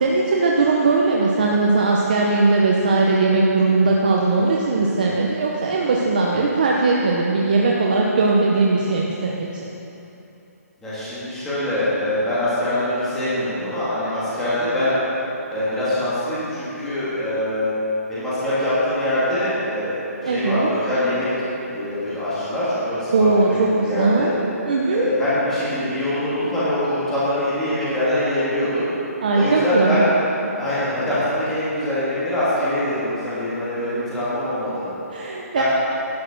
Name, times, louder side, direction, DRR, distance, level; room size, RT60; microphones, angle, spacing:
voice 1, 0.0-9.5 20.2-20.7 23.1-24.3 24.7-25.1 29.2-30.0 35.1-35.6, right 3 dB, 30° right, -3 dB, 0.7 m, -19 dB
voice 2, 10.8-15.0 15.5-17.7 18.1-21.3 21.7-24.3 24.9-28.9 29.3-30.1 30.6-34.9 35.5-35.6, left 1 dB, 5° left, -12 dB, 1.7 m, -23 dB
11.5 x 6.4 x 6.4 m, 3.0 s
hypercardioid pair, 180°, 9 cm